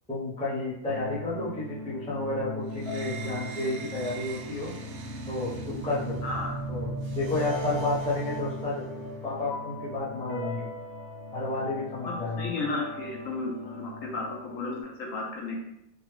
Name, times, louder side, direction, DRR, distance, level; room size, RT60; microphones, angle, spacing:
voice 1, 0.1-4.7 5.3-6.2 6.7-8.8 9.2-10.7 11.3-12.5, left 2 dB, 5° left, -8 dB, 0.5 m, -31 dB
sound 1, 0.9-14.8, left 2 dB, 90° left, 1.3 m, -39 dB
sound 2, 2.7-9.4, right 3 dB, 85° right, 1.1 m, -38 dB
voice 2, 6.2-6.5 12.4-15.6, left 3 dB, 70° left, 0 dB, 0.9 m, -33 dB
3.4 x 2.2 x 3.2 m, 0.81 s
omnidirectional pair, 1.6 m